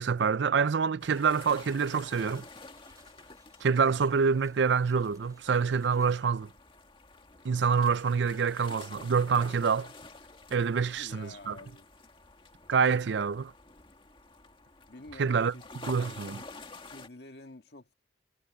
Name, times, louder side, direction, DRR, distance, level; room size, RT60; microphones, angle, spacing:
voice 1, 0.0-2.4 3.6-6.5 7.4-9.9 10.5-11.6 12.7-13.5 15.2-15.5 15.8-16.4, right 5 dB, 75° right, 0.5 m, -26 dB
sound 1, 1.0-17.1, left 3 dB, 25° left, 1.9 m, -50 dB
sound 2, 1.2-6.2, right 4 dB, 20° right, 4.3 m, -63 dB
voice 2, 10.7-11.9 14.9-15.7 16.8-17.9, left 2 dB, 60° left, 1.8 m, -49 dB
head